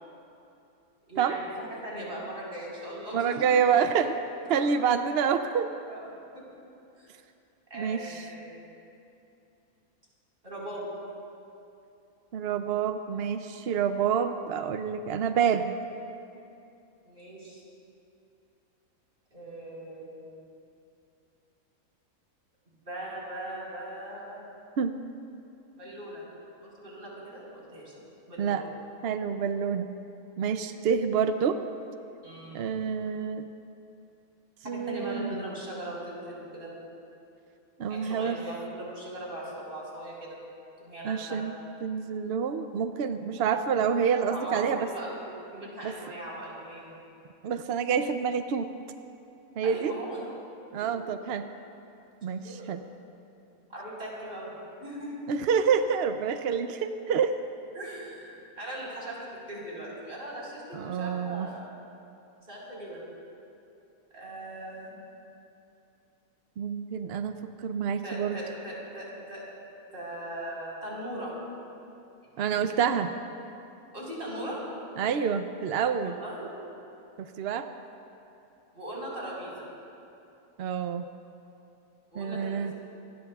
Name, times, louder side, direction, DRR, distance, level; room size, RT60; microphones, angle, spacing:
voice 1, 1.1-3.4 3.7-3.9 4.5-4.6 5.9-6.0 6.3-6.4 7.0-7.1 7.7-8.6 10.4-10.9 17.0-17.6 19.3-20.4 22.8-24.4 25.8-26.2 26.6-28.7 32.2-32.6 34.6-36.7 37.9-40.4 40.8-41.4 43.4-43.5 44.3-47.0 49.6-50.3 50.7-51.0 52.4-53.0 53.7-55.2 57.7-59.2 59.5-61.7 62.5-63.0 64.1-65.0 68.0-69.4 69.9-71.3 72.3-72.6 73.9-74.6 76.0-76.6 78.7-79.7 82.1-82.7, right 1 dB, 35° right, -5 dB, 4.7 m, -39 dB
voice 2, 3.1-4.1 4.5-5.7 7.7-8.2 12.3-15.7 24.8-24.9 28.4-28.7 29.0-29.9 30.4-31.6 32.5-33.4 34.7-35.3 37.8-38.4 41.0-41.5 41.8-44.9 45.8-45.9 47.4-48.7 49.6-49.9 50.7-51.4 52.2-52.8 55.3-57.4 60.7-61.5 66.6-68.4 72.4-73.1 75.0-76.2 77.2-77.7 80.6-81.1 82.2-82.7, right 7 dB, 70° right, 8 dB, 0.6 m, -27 dB
26.0 x 19.5 x 2.4 m, 2.7 s
omnidirectional pair, 1.6 m